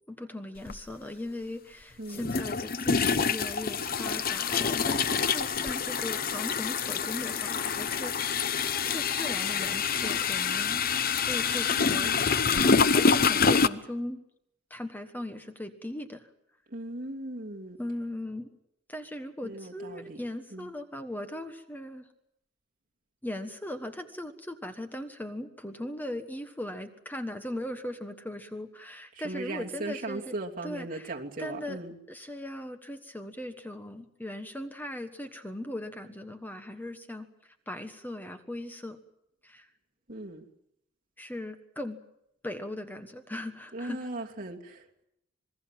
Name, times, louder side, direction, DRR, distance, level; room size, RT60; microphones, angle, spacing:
voice 1, 0.1-8.4 8.8-14.2 14.7-16.3 17.8-18.5 18.9-22.1 23.2-30.3 30.6-31.8 32.1-39.0 39.4-39.7 41.2-42.0 42.4-44.1, left 1 dB, 10° left, 7 dB, 1.4 m, -39 dB
sound 1, 0.7-0.8 2.2-13.7, left 5 dB, 50° left, 0.9 m, -26 dB
voice 2, 11.7-12.3 16.7-17.8 19.4-20.2 20.5-20.7 29.2-31.9 40.1-40.4 43.7-45.0, right 2 dB, 45° right, 0 dB, 2.9 m, -38 dB
27.5 x 21.0 x 7.6 m, 0.80 s
head